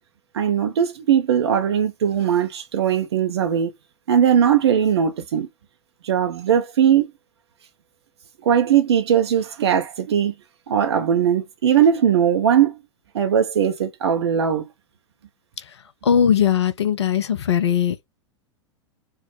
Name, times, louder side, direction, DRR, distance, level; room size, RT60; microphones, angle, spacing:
voice 1, 0.3-3.7 4.1-5.5 6.0-7.1 8.4-10.3 10.7-12.8 13.1-14.7, right 8 dB, 60° right, 0.6 m, -19 dB
voice 2, 16.0-18.1, left 8 dB, 65° left, 0.6 m, -19 dB
4.5 x 2.0 x 3.1 m
figure-of-eight pair, 95°, 15 cm